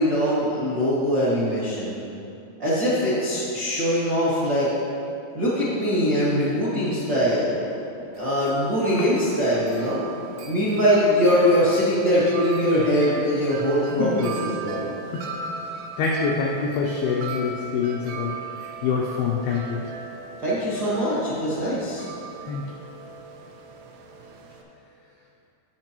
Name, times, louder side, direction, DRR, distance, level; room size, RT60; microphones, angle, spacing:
voice 1, 0.0-2.0 2.6-4.7 5.3-7.6 8.1-10.0 10.4-14.9 20.4-22.1, equal, 60° right, -9 dB, 1.0 m, -22 dB
Wind chime, 8.2-24.6, right 4 dB, 85° right, 2.9 m, -38 dB
voice 2, 13.9-14.3 15.1-15.3 16.0-19.8 22.4-22.6, left 5 dB, 90° left, -1 dB, 2.1 m, -26 dB
17.0 x 5.9 x 3.0 m, 2.8 s
omnidirectional pair, 5.0 m